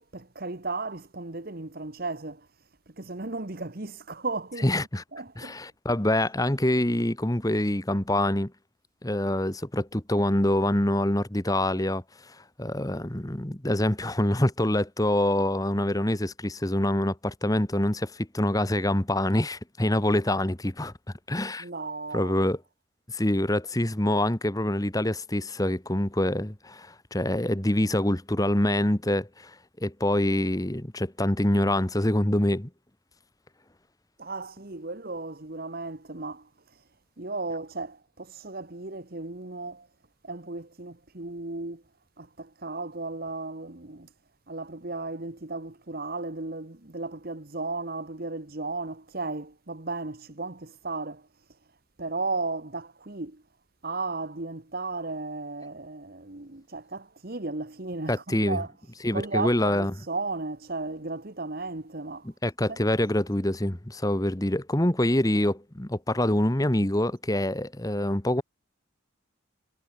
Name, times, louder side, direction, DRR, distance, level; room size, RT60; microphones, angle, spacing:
voice 1, 0.0-2.5 2.9-4.7 5.1-5.6 21.6-22.4 34.2-36.5 37.2-39.9 40.2-41.8 42.2-44.1 44.5-51.3 52.0-53.4 53.8-58.7 59.1-62.3 62.7-62.8, right 3 dB, 45° right, 1.5 m, -35 dB
voice 2, 4.6-5.0 5.4-8.5 9.0-20.9 21.3-21.6 22.1-22.6 23.1-32.7 58.1-58.6 59.0-59.9 62.4-68.4, left 1 dB, 15° left, 1.4 m, -25 dB
head